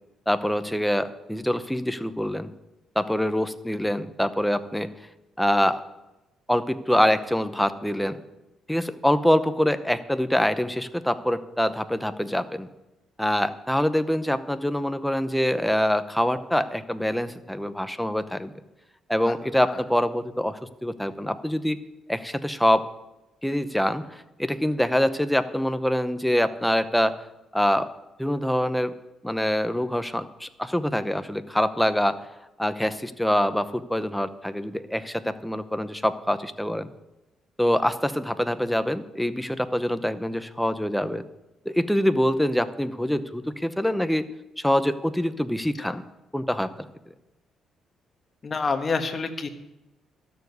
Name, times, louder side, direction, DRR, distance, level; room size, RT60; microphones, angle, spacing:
voice 1, 0.3-2.5 3.0-4.9 5.4-5.8 6.5-8.2 8.7-12.7 13.2-18.5 19.1-21.8 22.1-22.8 23.4-27.1 27.5-27.9 28.2-28.9 29.2-32.2 32.6-36.9 37.6-41.2 41.7-44.3 44.6-46.0 46.3-46.7, equal, 5° left, 11 dB, 0.8 m, -25 dB
voice 2, 48.4-49.5, left 4 dB, 35° left, 6 dB, 1.3 m, -27 dB
13.0 x 7.1 x 8.0 m, 0.97 s
cardioid pair, 90°, 0 cm